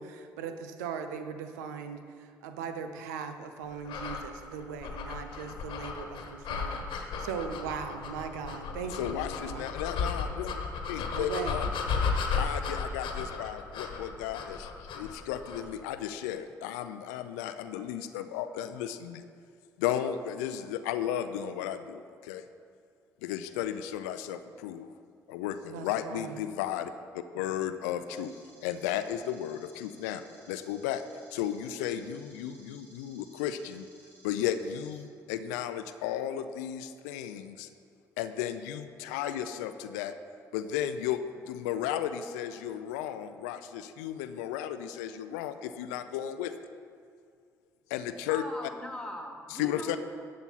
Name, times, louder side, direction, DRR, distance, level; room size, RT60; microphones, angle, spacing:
voice 1, 0.0-9.7 11.1-11.6 25.7-26.4, right 6 dB, 85° right, 8 dB, 0.7 m, -39 dB
sound 1, 3.8-15.7, left 5 dB, 65° left, 1.3 m, -34 dB
voice 2, 8.9-11.7 12.3-19.2 19.8-22.5 23.2-24.9 25.3-30.2 30.5-31.0 31.3-33.9 34.2-37.7 38.2-40.2 40.5-41.2 41.5-46.5 47.9-48.7 49.5-50.0, left 10 dB, 80° left, 10 dB, 0.5 m, -34 dB
sound 2, 28.2-35.0, right 2 dB, 60° right, 3.0 m, -59 dB
voice 3, 48.3-50.0, left 1 dB, 5° left, 0 dB, 2.5 m, -40 dB
12.5 x 8.7 x 4.1 m, 2.2 s
hypercardioid pair, 50°, 9 cm